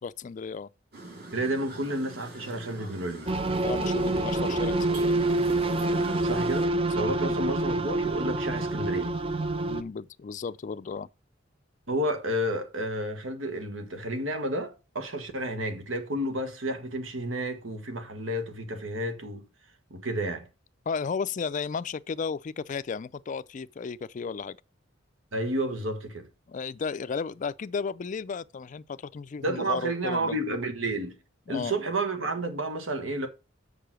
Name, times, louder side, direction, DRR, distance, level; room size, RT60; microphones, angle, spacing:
voice 1, 0.0-0.7 3.6-5.2 7.0-7.4 9.7-11.1 20.9-24.6 26.5-30.4 31.5-31.8, left 5 dB, 40° left, 0.3 m, -34 dB
sound 1, 0.9-6.7, right 2 dB, 50° right, 2.8 m, -44 dB
voice 2, 1.3-3.3 6.2-9.1 11.9-19.5 19.9-20.5 25.3-26.3 29.4-31.2 31.5-33.3, right 1 dB, 85° right, 1.6 m, -31 dB
sound 2, 3.3-9.8, right 2 dB, 30° right, 0.5 m, -27 dB
6.8 x 5.4 x 6.2 m
head